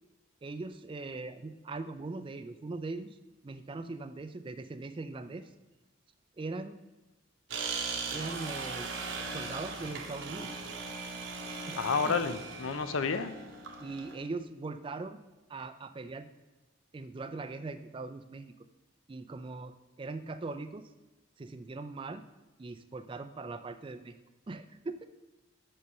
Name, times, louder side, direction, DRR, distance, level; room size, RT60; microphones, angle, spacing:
voice 1, 0.4-3.2 3.4-5.5 6.4-6.8 8.1-8.9 9.2-10.6 11.7-12.2 13.8-15.2 15.5-16.3 16.9-18.5 19.1-20.9 21.4-22.2 22.6-25.1, right 3 dB, 25° right, 11 dB, 0.3 m, -40 dB
sound 1, 7.5-14.2, right 4 dB, 65° right, 0.9 m, -39 dB
voice 2, 11.8-13.3, left 5 dB, 80° left, 11 dB, 0.6 m, -30 dB
5.6 x 5.3 x 6.7 m, 1.1 s
head